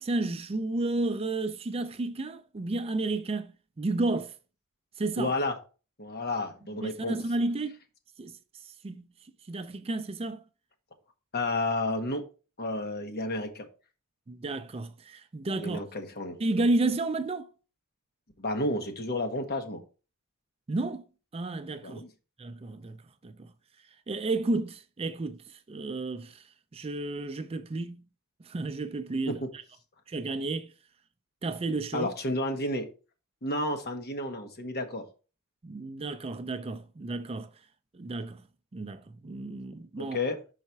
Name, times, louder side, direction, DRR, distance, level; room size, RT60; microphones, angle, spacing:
voice 1, 0.0-3.5 3.8-4.3 5.0-5.3 6.8-7.8 8.2-8.4 8.8-9.1 9.5-10.4 14.3-15.8 16.4-17.5 20.7-21.0 21.3-22.0 22.4-23.0 23.2-23.5 24.1-25.4 25.7-26.4 26.7-28.0 28.4-29.6 30.1-30.7 31.4-32.1 35.6-37.5 37.9-38.4 38.7-40.2, right 2 dB, 25° right, 0.4 m, -31 dB
voice 2, 5.2-5.6 6.0-7.2 11.3-12.2 12.6-13.7 15.5-16.4 18.4-19.8 21.8-22.1 29.3-29.4 31.9-32.9 33.4-35.0 40.0-40.4, left 2 dB, 50° left, 1.1 m, -31 dB
5.6 x 4.1 x 4.6 m
head